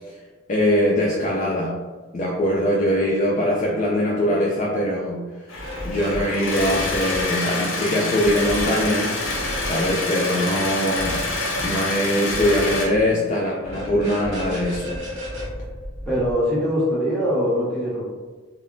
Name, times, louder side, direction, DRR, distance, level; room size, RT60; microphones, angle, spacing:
voice 1, 0.5-1.8 2.1-5.2 5.8-9.2 9.6-15.0, equal, 35° left, -4 dB, 0.3 m, -22 dB
sound 1, 5.5-12.9, left 2 dB, 75° left, 0.7 m, -27 dB
sound 2, 5.5-6.2 6.5-7.2 8.2-8.9 9.2-9.9 10.9-11.7 12.3-13.0 13.6-16.3, equal, 75° right, 1.0 m, -32 dB
voice 2, 16.1-18.0, equal, 5° left, -9 dB, 0.9 m, -22 dB
2.1 x 2.0 x 3.7 m, 1.3 s
head